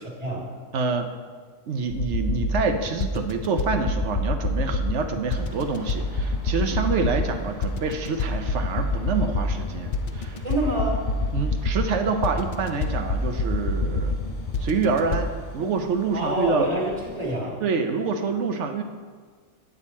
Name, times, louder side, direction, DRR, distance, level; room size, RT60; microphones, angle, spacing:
voice 1, 0.7-1.1 1.7-10.4 11.3-14.1 14.6-16.7 17.6-18.8, right 5 dB, 65° right, 6 dB, 1.0 m, -26 dB
sound 1, 1.9-15.3, left 2 dB, 55° left, 0.4 m, -27 dB
sound 2, 5.4-17.3, left 2 dB, 40° left, 1.0 m, -43 dB
voice 2, 10.4-11.0 16.1-17.6, right 1 dB, 25° right, -2 dB, 2.0 m, -27 dB
9.0 x 8.1 x 4.2 m, 1.5 s
omnidirectional pair, 1.4 m